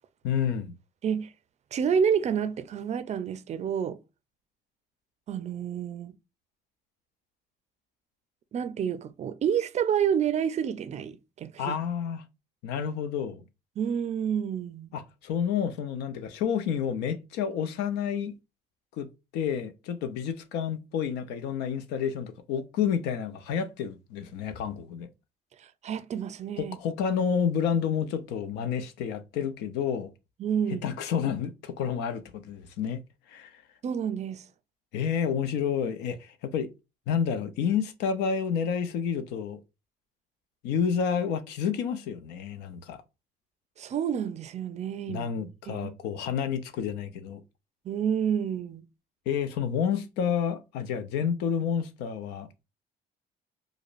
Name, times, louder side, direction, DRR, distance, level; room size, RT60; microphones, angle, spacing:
voice 1, 0.2-0.7 11.6-12.2 12.6-13.4 14.9-18.3 19.0-19.1 19.3-25.1 26.6-30.1 30.8-33.0 33.3-33.5 34.9-36.7 37.1-39.6 40.6-43.0 45.1-47.4 49.3-52.5, left 7 dB, 90° left, 0.6 m, -29 dB
voice 2, 1.7-4.0 5.3-6.1 8.5-11.8 13.8-14.9 25.8-26.8 30.4-30.9 33.8-34.4 43.8-45.9 47.9-48.8, right 8 dB, 40° right, 0.4 m, -29 dB
4.9 x 2.1 x 2.4 m
cardioid pair, 110°, 17 cm